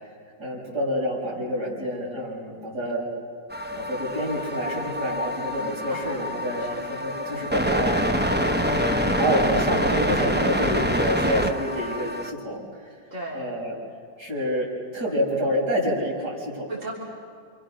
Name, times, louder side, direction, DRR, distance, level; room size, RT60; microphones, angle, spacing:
voice 1, 0.4-3.1 3.7-8.0 9.2-12.6 13.3-13.7 14.2-14.7 14.9-16.7, equal, 65° right, -4 dB, 6.9 m, -27 dB
sound 1, 3.5-12.3, equal, 10° right, 0.6 m, -26 dB
voice 2, 5.9-6.2 6.6-6.9 8.4-8.9 13.1-13.5 16.7-16.9, right 2 dB, 45° right, -6 dB, 4.0 m, -37 dB
28.5 x 27.0 x 6.4 m, 2.1 s
omnidirectional pair, 1.9 m